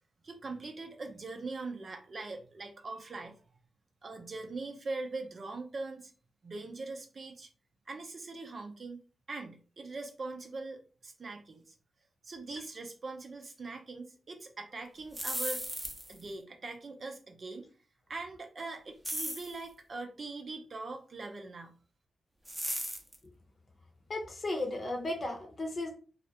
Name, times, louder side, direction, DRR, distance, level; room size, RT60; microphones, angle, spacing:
voice 1, 0.2-3.3 4.0-6.1 6.4-7.5 7.9-9.0 9.3-11.7 12.2-15.6 16.1-17.7 18.1-21.7, right 3 dB, 55° right, 5 dB, 0.5 m, -42 dB
sound 1, 15.0-16.2 19.0-19.6 22.5-23.2, equal, 10° right, 0.7 m, -36 dB
voice 2, 24.1-26.0, left 2 dB, 50° left, 2 dB, 0.8 m, -35 dB
2.4 x 2.1 x 2.8 m, 0.39 s
cardioid pair, 50°, 0 cm